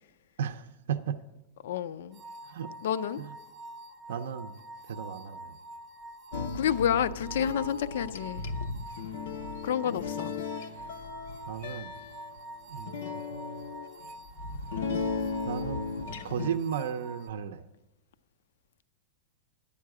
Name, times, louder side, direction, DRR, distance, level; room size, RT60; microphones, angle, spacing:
voice 1, 0.4-1.2 2.4-2.7 3.2-3.3 4.1-4.6 4.8-5.6 11.5-11.9 12.7-13.7 15.4-15.8 16.2-17.6, right 8 dB, 80° right, 0.5 m, -35 dB
voice 2, 1.6-2.2 2.8-3.2 6.5-8.5 9.6-10.3, left 9 dB, 70° left, 0.4 m, -29 dB
sound 1, 2.1-17.3, right 1 dB, 15° right, 0.5 m, -46 dB
sound 2, 6.3-16.5, left 4 dB, 90° left, 0.8 m, -36 dB
11.0 x 8.5 x 4.8 m
supercardioid pair, 175°, 0 cm